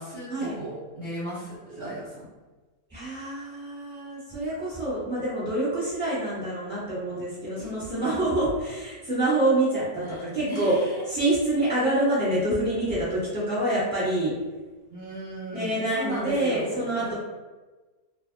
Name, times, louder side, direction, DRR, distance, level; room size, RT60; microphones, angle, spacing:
voice 1, 0.0-2.3 7.6-8.2 10.0-11.0 14.9-17.1, right 1 dB, 50° right, -10 dB, 0.9 m, -36 dB
voice 2, 2.9-10.7 11.1-14.3 15.5-17.1, right 1 dB, 5° left, -9 dB, 1.1 m, -26 dB
2.6 x 2.6 x 2.6 m, 1.2 s
omnidirectional pair, 1.7 m